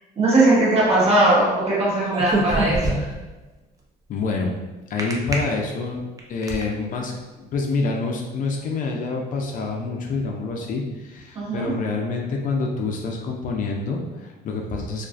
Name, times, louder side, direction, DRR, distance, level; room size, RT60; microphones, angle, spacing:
voice 1, 0.2-3.1 11.3-11.7, right 2 dB, 35° right, -7 dB, 1.1 m, -19 dB
sound 1, 2.0-3.3 5.0-5.3 6.0-6.6, right 2 dB, 20° right, 0.4 m, -24 dB
voice 2, 4.1-4.6 4.9-15.1, left 3 dB, 50° left, 1 dB, 0.4 m, -27 dB
2.4 x 2.2 x 2.3 m, 1.1 s
cardioid pair, 110°, 17 cm